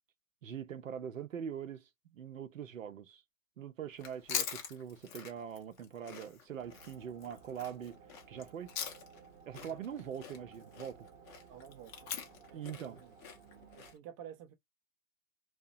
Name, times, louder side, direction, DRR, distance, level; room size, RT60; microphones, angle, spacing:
voice 1, 0.4-3.2 3.6-8.0 8.3-8.7 9.5-11.1 12.5-13.0, right 8 dB, 75° right, 0.6 m, -43 dB
Chewing mastication, 3.9-9.3 9.5-13.9, left 7 dB, 25° left, 0.6 m, -43 dB
sound 1, 6.6-13.9, right 6 dB, 45° right, 0.8 m, -57 dB
voice 2, 11.5-11.9 12.5-13.1 13.7-14.5, right 9 dB, 25° right, 0.4 m, -51 dB
2.7 x 2.1 x 2.4 m
figure-of-eight pair, 105°, 40 cm